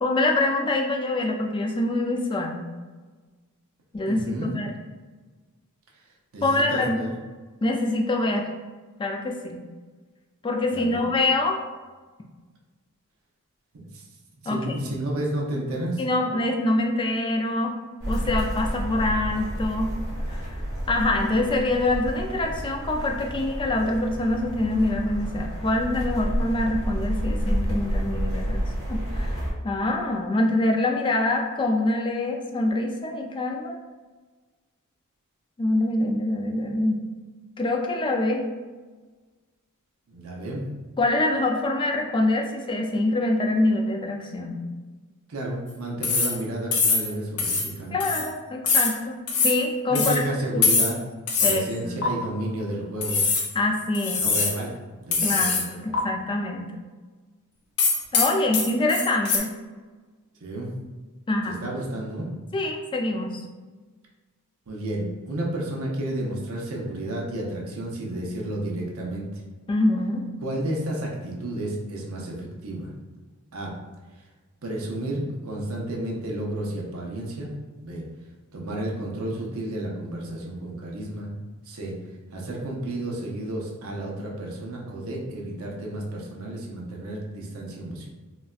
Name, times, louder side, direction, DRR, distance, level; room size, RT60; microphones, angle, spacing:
voice 1, 0.0-2.6 3.9-4.7 6.4-7.0 7.6-8.5 9.0-9.6 10.4-11.6 14.5-14.6 16.0-17.8 18.1-19.9 20.3-20.5 20.9-28.6 28.9-29.4 29.6-33.8 35.6-37.1 37.6-38.5 41.0-44.6 47.9-50.2 50.5-50.7 51.4-52.0 53.6-54.2 55.2-56.8 58.1-59.5 61.3-61.6 62.5-63.4 69.7-70.2, left 2 dB, 20° left, 2 dB, 0.3 m, -25 dB
voice 2, 4.1-4.5 6.3-7.1 10.7-11.0 13.9-14.0 14.4-16.0 40.1-40.6 45.3-48.1 49.9-51.0 51.4-53.2 54.2-54.7 55.0-56.0 60.4-60.7 61.5-62.3 64.7-69.3 70.4-72.9 73.5-73.7 74.6-77.5 77.8-78.0 78.5-81.3 81.7-81.9 82.3-88.1, right 1 dB, 65° right, -2 dB, 0.7 m, -31 dB
sound 1, 18.0-29.5, equal, 15° right, 1.1 m, -30 dB
sound 2, 46.0-46.4 46.7-47.1 47.4-47.7 48.0-48.3 48.7-48.9 49.3-49.6 50.0-50.2 50.6-51.0 51.3-51.6 52.0-52.1 53.0-53.5 53.9-54.6 55.1-55.7 55.9-56.0 57.8-59.4, left 4 dB, 90° left, 0.6 m, -23 dB
4.0 x 2.1 x 2.3 m, 1.3 s
head